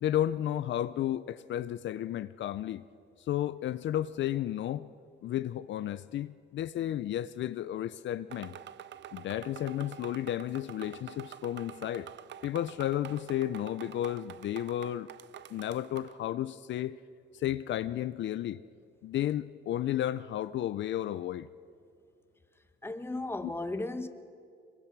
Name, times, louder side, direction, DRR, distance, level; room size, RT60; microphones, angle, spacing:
voice 1, 0.0-2.8 3.3-4.9 5.2-8.6 9.1-12.1 12.4-15.1 15.5-17.0 17.3-18.6 19.0-21.5 23.4-23.5, left 12 dB, 70° left, 0.6 m, -33 dB
sound 1, 8.3-16.2, right 11 dB, 65° right, 0.7 m, -47 dB
voice 2, 22.8-24.1, left 2 dB, 10° left, 1.3 m, -35 dB
23.5 x 23.0 x 6.0 m
cardioid pair, 90°, 20 cm